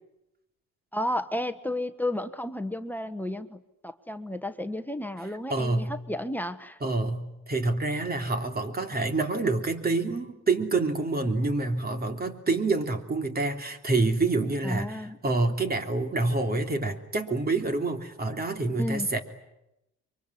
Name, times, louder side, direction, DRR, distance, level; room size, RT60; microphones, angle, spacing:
voice 1, 0.9-6.8 14.6-15.2 18.8-19.1, left 1 dB, 5° left, 8 dB, 1.4 m, -32 dB
voice 2, 5.5-6.0 6.8-19.2, right 3 dB, 30° right, 6 dB, 3.2 m, -27 dB
24.5 x 24.0 x 9.8 m, 0.87 s
cardioid pair, 90°, 30 cm